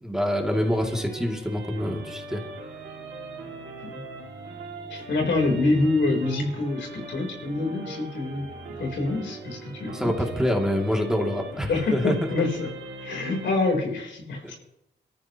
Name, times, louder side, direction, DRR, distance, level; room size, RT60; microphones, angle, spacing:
voice 1, 0.0-2.4 9.9-12.5 14.4-14.5, equal, 5° right, 1 dB, 2.6 m, -26 dB
sound 1, 0.5-13.5, right 3 dB, 85° right, 2.5 m, -40 dB
voice 2, 4.9-8.5 8.8-10.1 11.7-12.7 13.0-14.6, left 2 dB, 90° left, 1 dB, 3.8 m, -26 dB
24.5 x 13.5 x 3.0 m, 0.87 s
cardioid pair, 90°, 18 cm